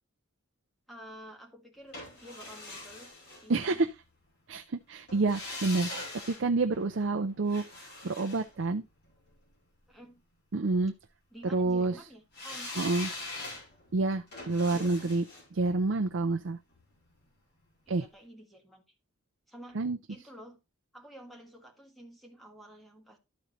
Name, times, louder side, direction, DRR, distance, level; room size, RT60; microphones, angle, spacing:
voice 1, 0.9-3.1 3.4-3.8 9.9-10.2 11.3-13.2 14.7-15.2 17.9-18.8 19.5-19.8 20.1-20.6 20.9-23.2, equal, ahead, 1.6 m, -50 dB
sound 1, 1.9-4.0 5.1-9.3 12.3-17.3 17.6-17.7, left 2 dB, 55° left, 4.1 m, -43 dB
voice 2, 3.5-3.9 4.5-5.9 6.3-7.6 8.0-8.8 10.5-10.9 11.4-11.9 12.8-13.1 13.9-15.2 15.6-16.6 17.9-18.0 19.8-20.0, right 3 dB, 65° right, 0.5 m, -28 dB
12.5 x 4.4 x 3.8 m
head